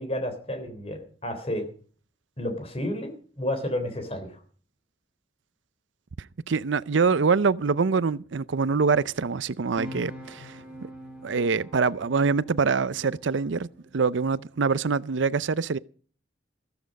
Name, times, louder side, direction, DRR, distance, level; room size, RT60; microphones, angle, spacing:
voice 1, 0.0-1.7 2.4-4.4, left 1 dB, 30° left, 3.5 m, -31 dB
voice 2, 6.5-10.6 11.2-13.7 13.9-15.8, right 5 dB, 85° right, 0.6 m, -24 dB
sound 1, 9.4-13.9, equal, 5° right, 5.3 m, -44 dB
14.5 x 14.0 x 5.2 m
head